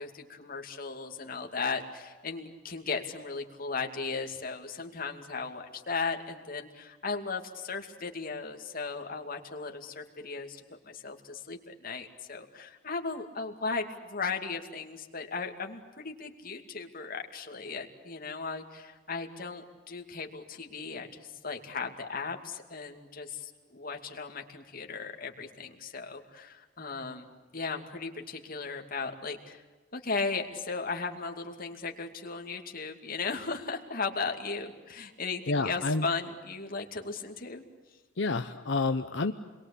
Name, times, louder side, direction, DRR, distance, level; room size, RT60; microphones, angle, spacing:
voice 1, 0.0-27.3 27.5-29.6 29.9-37.6, left 4 dB, 45° left, 4 dB, 2.5 m, -36 dB
voice 2, 35.5-36.1 38.2-39.3, left 3 dB, 65° left, 7 dB, 0.9 m, -29 dB
28.5 x 22.0 x 8.5 m, 1.3 s
head